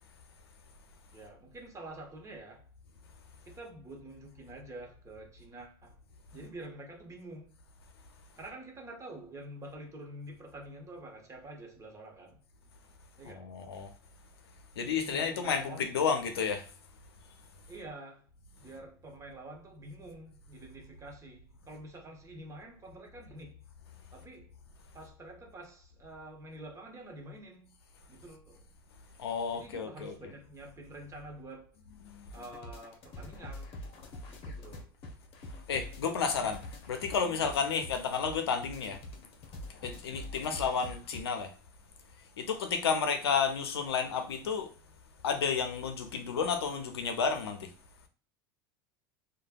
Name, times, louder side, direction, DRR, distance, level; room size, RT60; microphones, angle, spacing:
voice 1, 1.1-2.7 3.4-6.0 6.3-7.6 8.4-12.4 13.2-13.5 14.9-15.9 17.7-18.3 18.6-23.6 24.1-24.5 24.9-27.8 28.1-28.7 29.5-31.7 32.3-33.7 34.3-34.9, right 1 dB, 25° right, 1.1 m, -47 dB
voice 2, 13.2-13.9 14.8-16.7 29.2-30.1 32.0-32.4 35.7-39.0 39.7-41.5 42.4-44.7 45.2-47.7, left 6 dB, 85° left, 0.6 m, -31 dB
sound 1, 32.3-41.2, left 1 dB, 50° left, 0.8 m, -45 dB
3.2 x 2.3 x 2.3 m
hypercardioid pair, 90°, 13 cm